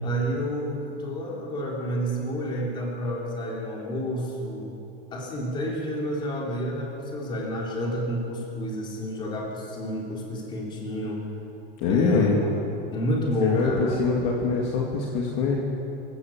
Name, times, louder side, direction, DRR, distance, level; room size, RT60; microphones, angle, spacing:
voice 1, 0.0-4.7 5.1-11.2 11.9-12.5 12.9-14.0, equal, 15° left, -2 dB, 3.6 m, -29 dB
voice 2, 11.8-12.4 13.4-15.6, left 4 dB, 35° left, -1 dB, 2.4 m, -24 dB
24.0 x 16.5 x 7.3 m, 2.9 s
supercardioid pair, 170°, 30 cm